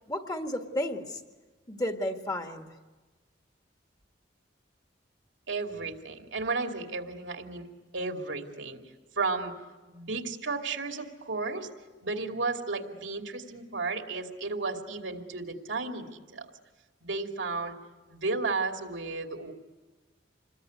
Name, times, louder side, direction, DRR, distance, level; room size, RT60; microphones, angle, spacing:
voice 1, 0.1-1.2 1.7-2.7, left 1 dB, 20° left, 5 dB, 1.7 m, -32 dB
voice 2, 5.5-7.7 7.9-8.8 9.2-9.5 9.9-11.7 12.0-16.5 17.0-17.7 18.1-19.5, right 3 dB, 85° right, 4 dB, 2.6 m, -33 dB
28.0 x 21.5 x 9.5 m, 1.3 s
head